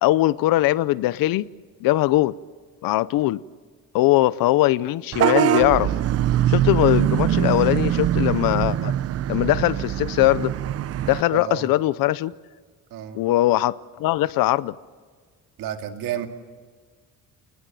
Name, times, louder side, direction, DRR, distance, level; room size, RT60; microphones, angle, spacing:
voice 1, 0.0-1.4 1.8-2.3 2.8-3.4 3.9-5.9 6.5-8.9 9.3-10.5 11.1-12.3 13.1-14.8, left 16 dB, 80° left, 0.7 m, -20 dB
Vehicle horn car horn honking / Bus, 5.1-11.2, right 11 dB, 45° right, 0.7 m, -22 dB
voice 2, 11.3-11.7 12.9-13.2 15.6-16.3, right 11 dB, 75° right, 2.4 m, -31 dB
29.5 x 20.0 x 7.7 m
cardioid pair, 170°, 34 cm